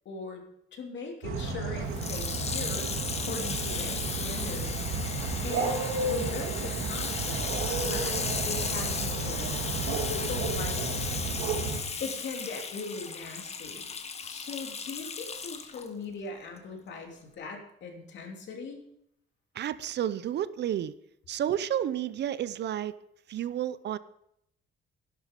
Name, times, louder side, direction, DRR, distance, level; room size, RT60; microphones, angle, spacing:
voice 1, 0.0-0.4 0.7-4.8 5.1-7.5 7.8-10.8 12.0-13.9 14.2-18.8, left 3 dB, 60° left, 2 dB, 2.8 m, -40 dB
sound 1, 1.2-11.8, right 4 dB, 85° right, 2.2 m, -32 dB
Water tap faucet / Sink (filling or washing), 1.9-15.9 16.6-16.7, left 5 dB, 30° left, 1.1 m, -35 dB
voice 2, 19.6-20.9 21.3-22.9 23.3-24.0, right 10 dB, 55° right, 16 dB, 0.6 m, -31 dB
12.5 x 11.0 x 5.2 m, 0.75 s
cardioid pair, 145°, 21 cm